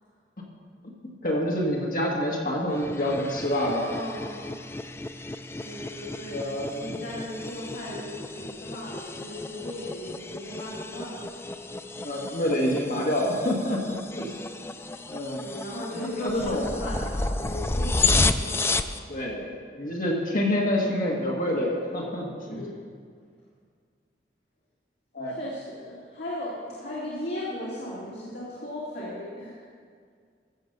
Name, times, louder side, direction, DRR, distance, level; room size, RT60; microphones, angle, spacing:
voice 1, 0.8-3.9 6.3-7.0 12.0-14.3 15.1-15.4 16.0-16.7 19.1-22.7 25.1-25.3, left 1 dB, 50° left, -1 dB, 1.8 m, -27 dB
sound 1, 2.7-19.0, left 3 dB, 15° left, 0.3 m, -32 dB
voice 2, 3.8-4.5 5.6-11.2 15.4-19.0 22.4-22.8 25.3-29.6, left 1 dB, 65° left, -7 dB, 2.5 m, -37 dB
14.0 x 7.3 x 6.8 m, 2.1 s
head